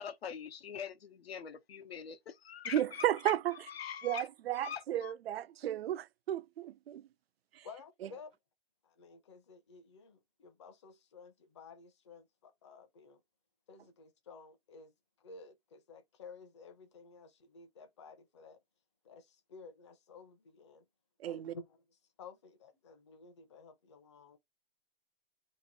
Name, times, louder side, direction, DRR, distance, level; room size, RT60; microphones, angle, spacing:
voice 1, 0.0-3.4 3.7-4.3 4.5-5.1, left 7 dB, 85° left, 1.0 m, -43 dB
voice 2, 2.7-3.5 4.0-7.0 7.6-7.7 21.2-21.5, right 12 dB, 80° right, 0.4 m, -33 dB
voice 3, 7.6-8.4 8.8-13.2 13.7-14.9 15.2-18.6 19.0-20.9 21.2-24.4, left 4 dB, 30° left, 0.7 m, -54 dB
3.0 x 2.6 x 3.9 m
hypercardioid pair, 175°, 30 cm